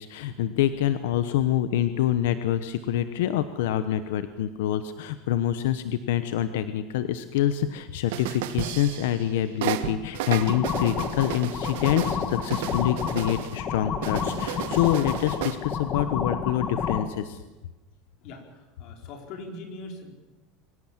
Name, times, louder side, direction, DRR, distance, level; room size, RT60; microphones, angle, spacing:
voice 1, 0.0-17.4, left 11 dB, 90° left, 11 dB, 1.1 m, -26 dB
sound 1, 8.1-9.3 9.6-13.6 14.0-15.6, right 12 dB, 80° right, 1.4 m, -33 dB
sound 2, 10.4-17.0, left 6 dB, 30° left, 1.7 m, -30 dB
voice 2, 18.2-20.1, left 2 dB, 50° left, 3 dB, 4.6 m, -41 dB
24.0 x 17.0 x 7.6 m, 1.1 s
supercardioid pair, 160°, 0 cm